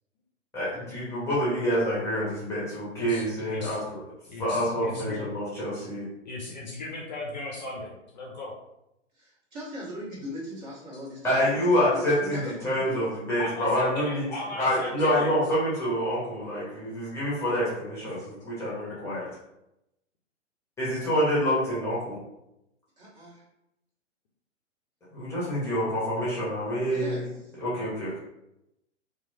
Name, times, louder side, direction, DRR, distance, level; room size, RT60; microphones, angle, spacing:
voice 1, 0.5-3.8 4.4-6.1 11.2-14.2 14.6-19.3 20.8-22.2 25.1-27.3 27.6-28.2, equal, 5° left, -8 dB, 0.8 m, -27 dB
voice 2, 2.9-3.8 4.3-5.2 6.2-8.5 13.4-15.4, left 2 dB, 35° left, -2 dB, 0.4 m, -37 dB
voice 3, 9.1-13.1 23.0-23.4 26.9-27.5, equal, 35° right, -6 dB, 1.2 m, -40 dB
3.0 x 2.2 x 2.6 m, 0.88 s
figure-of-eight pair, 120°, 37 cm